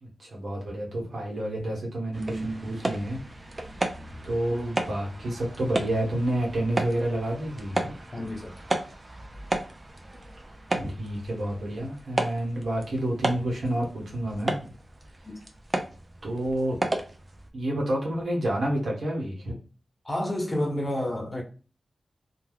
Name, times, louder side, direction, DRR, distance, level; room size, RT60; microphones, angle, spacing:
voice 1, 0.0-3.2 4.2-7.9 10.7-14.6 16.2-16.8 17.5-19.5, right 1 dB, 70° right, 1.1 m, -29 dB
sound 1, 2.1-17.5, right 2 dB, 40° right, 0.5 m, -34 dB
voice 2, 8.1-8.6 15.2-15.4 20.0-21.4, left 1 dB, 30° left, 0.9 m, -29 dB
2.3 x 2.2 x 3.3 m
cardioid pair, 40°, 0 cm